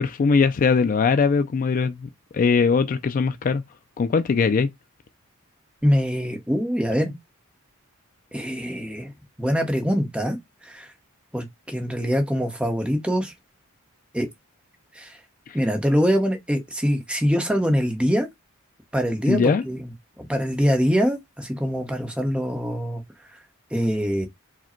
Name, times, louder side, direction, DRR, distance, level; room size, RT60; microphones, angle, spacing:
voice 1, 0.0-3.6 4.0-4.7 15.5-15.6 19.3-19.6, left 5 dB, 40° left, 0.3 m, -21 dB
voice 2, 5.8-7.2 8.3-9.1 9.4-10.4 10.6-10.9 11.3-13.3 14.1-14.3 15.0-15.2 15.5-18.3 18.9-19.9 20.2-23.0 23.7-24.3, equal, 5° right, 0.9 m, -24 dB
4.8 x 2.1 x 4.3 m
head